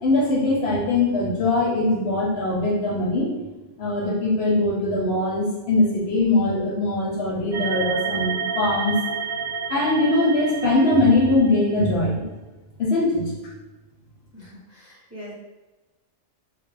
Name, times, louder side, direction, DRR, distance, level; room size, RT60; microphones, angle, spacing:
voice 1, 0.0-3.3 3.8-8.9 9.7-12.2 12.8-13.3, left 2 dB, 65° left, -3 dB, 0.7 m, -21 dB
sound 1, 7.5-11.8, right 5 dB, 60° right, 0.7 m, -30 dB
voice 2, 14.3-15.3, equal, 20° right, -7 dB, 0.5 m, -42 dB
2.2 x 2.0 x 3.1 m, 1.1 s
omnidirectional pair, 1.3 m